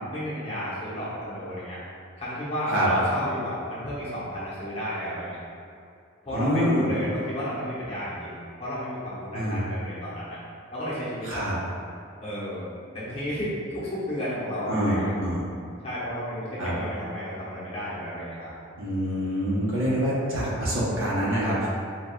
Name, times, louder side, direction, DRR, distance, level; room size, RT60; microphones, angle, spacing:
voice 1, 0.1-1.8 2.2-5.4 6.2-10.4 10.7-11.5 12.2-12.7 12.9-15.1 15.8-18.5, equal, 30° left, -10 dB, 1.0 m, -32 dB
voice 2, 6.3-6.9 9.3-9.6 11.2-11.6 14.6-15.4 16.6-16.7 18.7-21.7, equal, 80° right, -7 dB, 1.1 m, -26 dB
4.6 x 3.5 x 2.3 m, 2.4 s
head